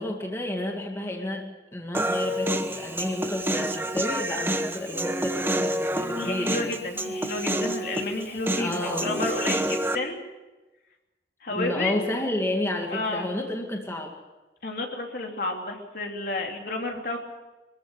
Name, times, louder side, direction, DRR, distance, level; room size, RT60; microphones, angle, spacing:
voice 1, 0.0-1.5 1.7-6.8 8.6-9.1 11.5-14.2, left 1 dB, 15° left, 1 dB, 2.2 m, -30 dB
Human voice, 1.9-10.0, right 1 dB, 15° right, 1.0 m, -28 dB
voice 2, 6.1-10.2 11.4-12.0 12.9-13.3 14.6-17.2, left 2 dB, 60° left, 2 dB, 3.1 m, -31 dB
23.5 x 14.5 x 8.3 m, 1.1 s
head